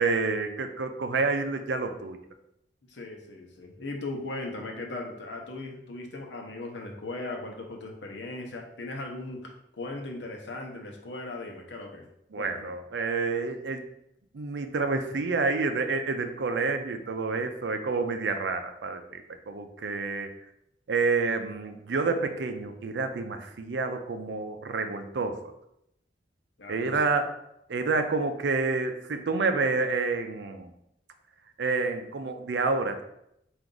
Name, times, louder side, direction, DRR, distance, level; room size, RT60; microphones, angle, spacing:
voice 1, 0.0-2.2 12.3-13.8 14.3-20.3 20.9-25.4 26.7-27.3 27.7-30.7 31.6-33.0, right 4 dB, 75° right, 7 dB, 0.5 m, -28 dB
voice 2, 2.9-12.1 12.4-12.7 26.6-27.0, left 2 dB, 75° left, 2 dB, 0.8 m, -38 dB
4.6 x 2.6 x 3.8 m, 0.79 s
head